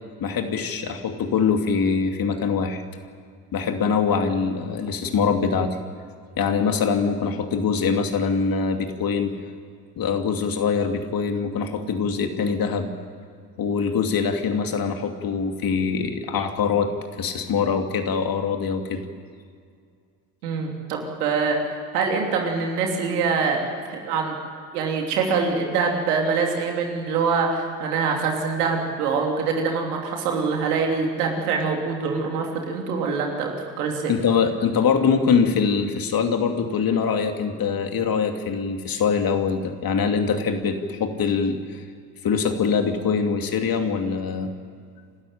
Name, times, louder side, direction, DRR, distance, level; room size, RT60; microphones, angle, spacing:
voice 1, 0.2-2.8 3.5-5.8 6.4-9.4 10.0-12.9 13.6-16.9 17.2-19.0 34.1-41.8 42.2-44.5, left 5 dB, 50° left, 5 dB, 2.7 m, -23 dB
voice 2, 20.4-21.6 21.9-23.6 23.9-24.4 24.7-34.1, right 5 dB, 85° right, 1 dB, 3.2 m, -24 dB
29.0 x 13.0 x 8.8 m, 2.2 s
hypercardioid pair, 65°, 45 cm